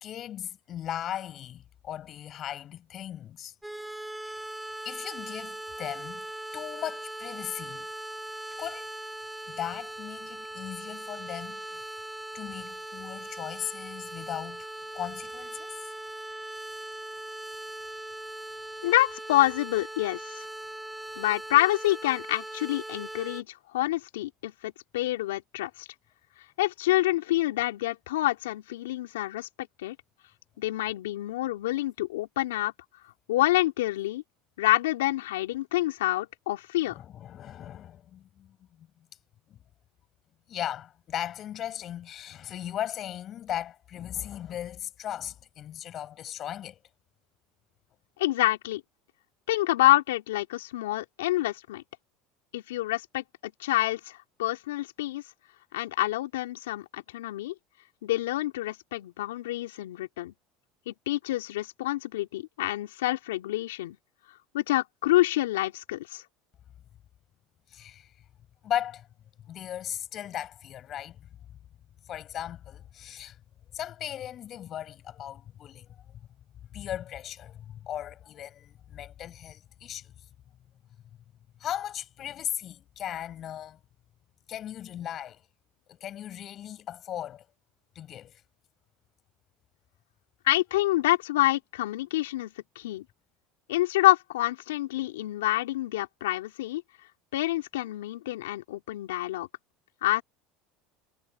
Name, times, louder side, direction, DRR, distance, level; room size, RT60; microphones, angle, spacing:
voice 1, 0.0-3.5 4.2-4.4 4.8-6.2 6.5-7.9 8.6-8.9 9.5-11.9 12.3-15.8 36.9-38.9 39.5-39.6 40.5-46.8 67.7-68.1 68.6-69.1 69.4-71.3 72.1-73.4 73.7-76.2 76.7-80.1 81.6-83.8 84.5-85.4 85.9-87.5 87.9-88.4, left 11 dB, 45° left, 7.7 m, -37 dB
sound 1, 3.6-23.4, right 1 dB, 5° right, 7.5 m, -40 dB
voice 2, 18.8-20.5 21.2-23.5 23.7-25.9 26.6-30.0 30.6-32.7 33.3-34.2 34.6-37.0 48.2-48.8 49.5-51.8 52.5-55.2 55.7-57.5 58.0-60.3 60.9-64.0 64.5-66.2 90.5-93.0 93.7-96.8 97.3-99.5 100.0-100.2, left 16 dB, 85° left, 3.7 m, -27 dB
hypercardioid pair, 90°, 0 cm